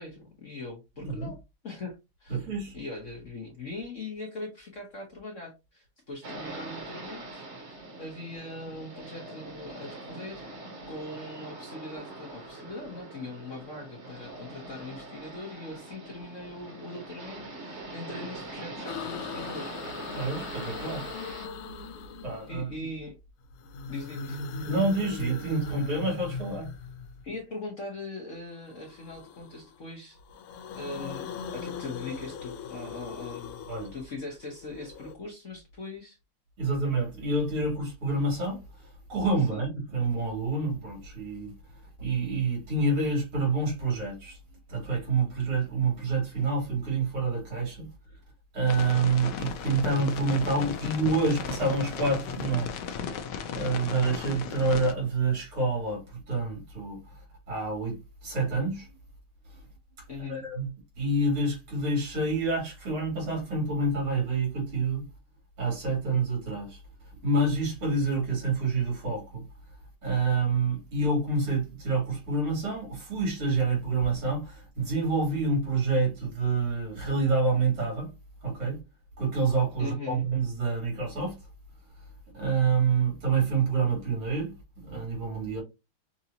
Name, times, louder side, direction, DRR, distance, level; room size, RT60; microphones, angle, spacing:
voice 1, 0.0-1.4 1.6-19.7 22.5-23.1 23.9-24.4 27.2-30.2 30.7-33.6 33.9-36.2 39.5-39.6 60.1-60.5 79.8-80.2, left 2 dB, 45° left, 1.1 m, -41 dB
voice 2, 1.0-1.3 2.3-2.7 20.1-21.0 22.2-22.6 24.6-26.7 33.7-33.9 36.6-38.6 39.1-41.5 42.0-44.4 44.7-47.9 48.5-52.7 53.5-57.0 57.5-58.9 60.3-60.7 61.0-65.0 65.6-66.8 67.2-69.4 70.0-78.1 78.4-78.8 79.2-81.4 82.3-84.5 84.8-85.6, right 3 dB, 80° right, 3.7 m, -27 dB
sound 1, 6.2-21.5, right 2 dB, 35° right, 1.3 m, -42 dB
sound 2, 18.9-22.8 23.5-27.3 28.6-29.8 30.2-35.2, left 5 dB, 85° left, 1.6 m, -40 dB
sound 3, 48.7-54.9, left 6 dB, 70° left, 1.2 m, -35 dB
6.0 x 2.7 x 2.8 m
omnidirectional pair, 2.4 m